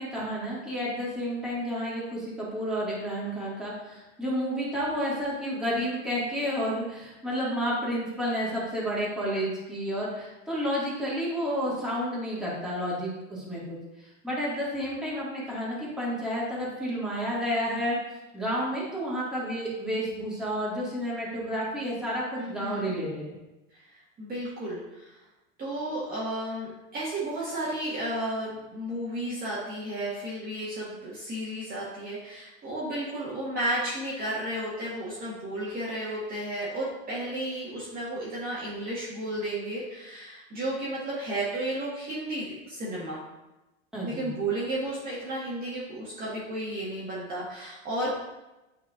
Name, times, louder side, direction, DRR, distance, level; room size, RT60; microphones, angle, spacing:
voice 1, 0.0-13.8 14.2-18.0 18.3-23.3 43.9-44.3, equal, ahead, -8 dB, 2.0 m, -30 dB
voice 2, 22.4-22.9 23.7-25.2 25.6-43.2 44.0-48.1, right 1 dB, 25° right, -7 dB, 1.6 m, -33 dB
8.8 x 4.6 x 2.5 m, 1.0 s
supercardioid pair, 130°, 37 cm